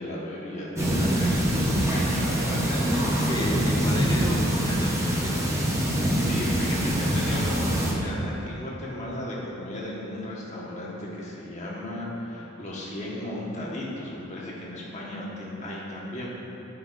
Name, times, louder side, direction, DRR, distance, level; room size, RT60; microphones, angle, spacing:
voice 1, 0.0-3.2 5.7-16.3, left 1 dB, 35° left, -5 dB, 1.4 m, -35 dB
sound 1, 0.8-7.9, equal, 15° right, 0.9 m, -24 dB
voice 2, 3.2-5.7 15.3-15.5, equal, 20° left, 0 dB, 0.7 m, -33 dB
9.5 x 8.6 x 2.6 m, 2.9 s
head